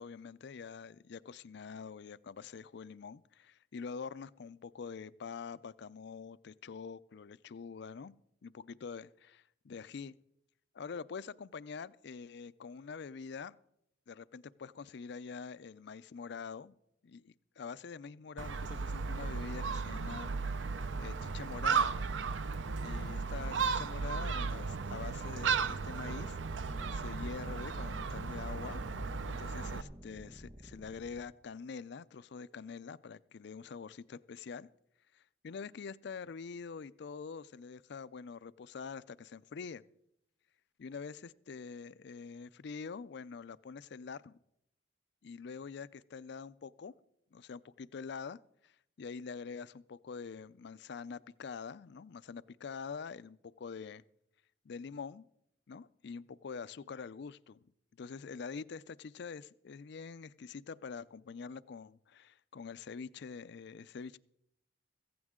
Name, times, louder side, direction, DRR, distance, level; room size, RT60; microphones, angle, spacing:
voice 1, 0.0-8.2 8.4-10.2 10.7-13.6 14.1-16.8 17.0-20.3 20.6-21.9 22.8-28.8 29.3-34.7 35.1-39.8 40.8-44.4 45.2-46.9 47.3-54.0 54.6-55.2 55.7-57.6 58.0-64.2, left 5 dB, 65° left, 17 dB, 0.4 m, -45 dB
Gull seagull, 18.4-29.8, right 5 dB, 90° right, 0.6 m, -35 dB
sound 1, 22.5-31.2, equal, 35° right, 1.4 m, -51 dB
15.5 x 15.0 x 3.7 m, 0.78 s
head